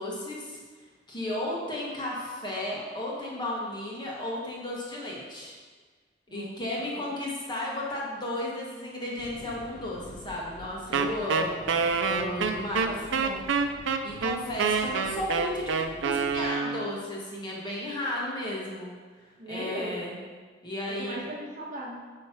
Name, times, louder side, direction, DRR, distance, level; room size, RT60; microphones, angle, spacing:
voice 1, 0.0-5.5 6.3-12.9 14.0-20.2 20.6-21.3, left 1 dB, 25° left, -4 dB, 1.4 m, -34 dB
voice 2, 6.3-7.0 10.9-11.2 12.8-13.4 19.4-19.9 20.8-22.0, right 1 dB, 45° right, -5 dB, 1.6 m, -39 dB
sound 1, 9.2-16.5, left 3 dB, 50° left, 0.4 m, -48 dB
Wind instrument woodwind instrument, 10.9-17.0, right 5 dB, 90° right, 0.5 m, -27 dB
9.1 x 3.2 x 5.8 m, 1.5 s
head